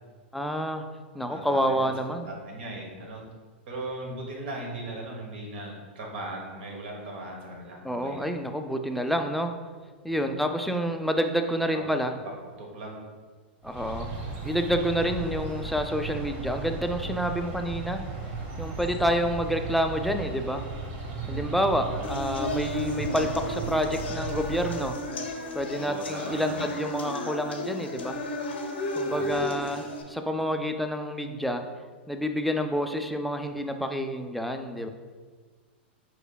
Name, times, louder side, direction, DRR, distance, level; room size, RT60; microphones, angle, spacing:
voice 1, 0.3-0.8 1.1-2.3 7.8-9.5 10.0-12.1 13.6-14.1 14.4-18.0 18.6-20.6 21.3-25.0 25.5-28.2 29.0-31.6 32.1-34.9, equal, ahead, 5 dB, 0.3 m, -28 dB
voice 2, 1.3-1.9 2.3-3.2 3.7-8.3 10.1-10.4 11.7-11.8 12.6-13.0 21.2-21.6 21.9-22.2 25.8-26.7 29.1-29.4, right 2 dB, 70° right, 0 dB, 1.2 m, -38 dB
sound 1, 13.6-25.0, right 4 dB, 45° right, 0.9 m, -36 dB
sound 2, 22.0-30.0, left 1 dB, 80° left, 0.7 m, -34 dB
4.7 x 4.4 x 2.3 m, 1.5 s
hypercardioid pair, 110°, 6 cm